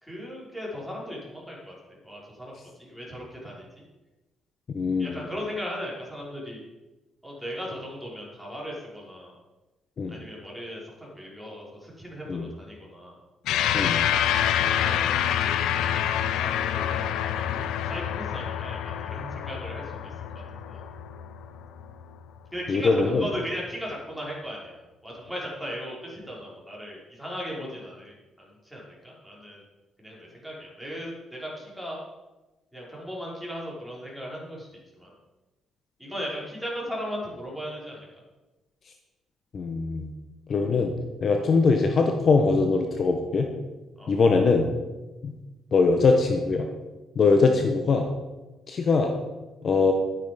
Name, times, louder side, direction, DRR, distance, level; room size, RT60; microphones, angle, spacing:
voice 1, 0.0-3.7 5.0-6.6 7.2-9.3 10.1-13.2 14.7-15.6 16.3-20.9 22.5-29.6 30.0-32.0 32.7-34.7 34.9-35.1 36.0-38.1 44.0-44.2, equal, ahead, -5 dB, 5.4 m, -37 dB
voice 2, 4.7-5.2 10.0-10.2 12.3-12.5 13.7-14.0 22.7-23.2 39.5-40.1 40.5-40.9 41.2-43.5 44.1-44.7 45.2-45.3 45.7-46.7 47.1-48.1 48.7-49.1 49.6-49.9, left 4 dB, 50° left, 4 dB, 1.4 m, -22 dB
sound 1, 13.5-22.1, left 10 dB, 90° left, 0.7 m, -27 dB
12.0 x 9.8 x 5.3 m, 1.1 s
cardioid pair, 90°, 0 cm